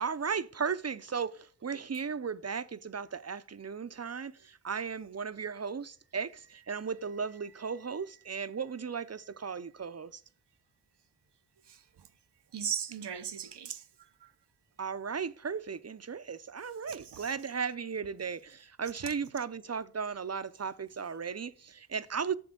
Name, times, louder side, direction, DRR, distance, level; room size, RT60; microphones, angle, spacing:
voice 1, 0.0-10.2 14.8-22.4, right 6 dB, 40° right, 0.6 m, -36 dB
voice 2, 11.7-12.1 12.5-13.8 14.2-14.3 16.9-17.4 19.0-19.1, right 8 dB, 90° right, 0.7 m, -38 dB
10.5 x 7.6 x 3.8 m
wide cardioid pair, 75°, 40 cm